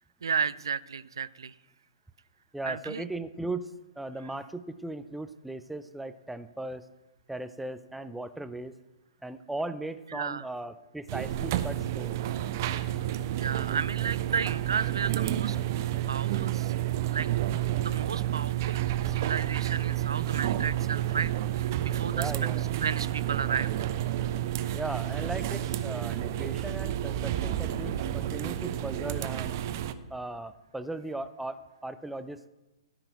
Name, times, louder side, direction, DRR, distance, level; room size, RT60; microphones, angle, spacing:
voice 1, 0.2-1.5 2.6-3.0 10.1-10.4 13.3-15.6 16.1-16.7 17.1-17.3 17.8-22.3 22.8-23.9, right 6 dB, 65° right, 18 dB, 0.4 m, -33 dB
voice 2, 2.5-6.9 7.3-8.7 9.2-12.2 22.1-22.7 24.7-29.6 30.1-32.5, right 2 dB, 5° right, 12 dB, 0.5 m, -38 dB
sound 1, 11.1-29.9, right 12 dB, 40° right, 0.8 m, -30 dB
15.5 x 5.8 x 8.1 m, 1.0 s
figure-of-eight pair, 115°, 3 cm